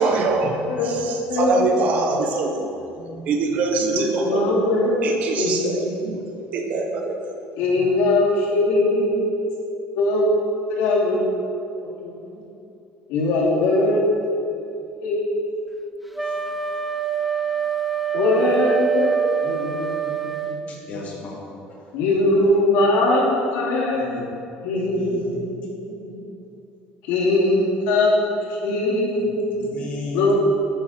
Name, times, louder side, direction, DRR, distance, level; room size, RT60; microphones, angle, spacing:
voice 1, 0.0-2.7 3.0-4.4 5.0-6.2 6.5-7.2, right 3 dB, 40° right, 3 dB, 1.1 m, -23 dB
voice 2, 0.7-1.0 1.2-1.5 3.9-6.5 7.6-9.4 9.9-12.4 13.1-15.4 18.1-19.2 19.4-20.8 21.9-24.2 24.6-26.2 27.1-28.1 28.6-29.6 30.1-30.3, left 2 dB, 75° left, -4 dB, 2.8 m, -22 dB
Wind instrument woodwind instrument, 16.1-20.6, right 7 dB, ahead, 0.4 m, -25 dB
voice 3, 20.7-21.4 24.8-25.3 29.7-30.3, left 3 dB, 40° left, -2 dB, 2.2 m, -33 dB
11.0 x 9.2 x 4.4 m, 2.6 s
cardioid pair, 170°, 4 cm